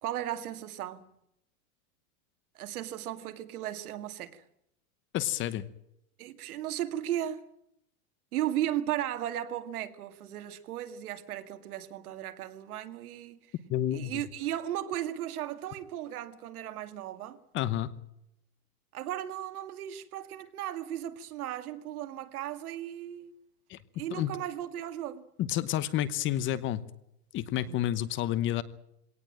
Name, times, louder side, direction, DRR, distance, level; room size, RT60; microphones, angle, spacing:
voice 1, 0.0-1.1 2.6-4.4 6.2-7.4 8.3-13.4 13.9-17.4 18.9-23.3 24.0-25.3 27.6-27.9, right 12 dB, 80° right, 2.1 m, -36 dB
voice 2, 5.1-5.6 13.7-14.1 17.5-17.9 23.7-23.8 24.1-24.3 25.4-26.8 27.3-28.6, left 12 dB, 25° left, 1.0 m, -30 dB
22.0 x 18.0 x 8.9 m
supercardioid pair, 155°, 43 cm